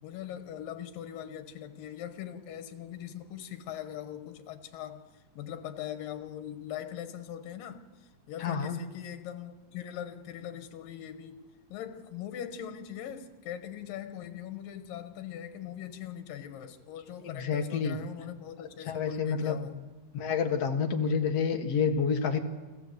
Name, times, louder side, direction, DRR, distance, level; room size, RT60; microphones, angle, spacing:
voice 1, 0.0-11.4 11.7-19.9, left 10 dB, 85° left, 8 dB, 2.9 m, -41 dB
voice 2, 8.4-8.8 17.2-18.0 18.9-19.5 20.1-22.4, left 6 dB, 55° left, 5 dB, 2.3 m, -28 dB
29.5 x 14.5 x 8.0 m, 1.2 s
omnidirectional pair, 3.9 m